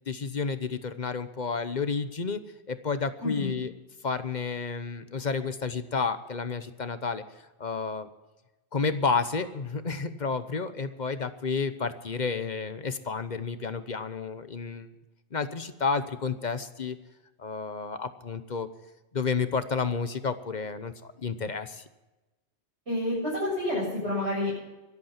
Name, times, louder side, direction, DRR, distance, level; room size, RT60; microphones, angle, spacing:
voice 1, 0.1-2.4 2.7-3.7 4.0-7.2 7.6-8.1 8.7-14.9 15.3-17.0 17.4-18.7 19.1-21.8, left 5 dB, 45° left, 11 dB, 1.0 m, -31 dB
voice 2, 3.2-3.5 22.9-24.6, left 1 dB, 80° right, -7 dB, 7.8 m, -29 dB
24.0 x 8.4 x 5.8 m, 1.1 s
omnidirectional pair, 1.1 m